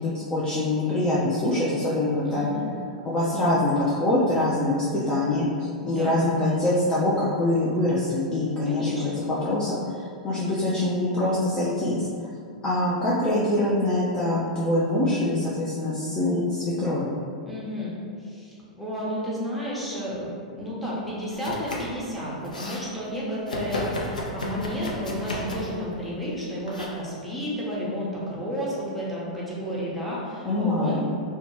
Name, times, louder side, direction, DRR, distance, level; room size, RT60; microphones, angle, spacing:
voice 1, 0.0-2.5 3.0-12.1 12.6-17.2 30.4-31.0, left 1 dB, 20° left, -8 dB, 0.5 m, -24 dB
voice 2, 2.2-2.7 5.8-6.1 8.6-9.2 17.4-31.0, equal, ahead, -8 dB, 0.9 m, -32 dB
Domestic sounds home sounds, 21.3-22.0 22.3-22.9 23.5-25.8 26.7-26.9, left 1 dB, 85° left, 0.4 m, -33 dB
2.7 x 2.2 x 3.0 m, 2.2 s
figure-of-eight pair, 100°, 4 cm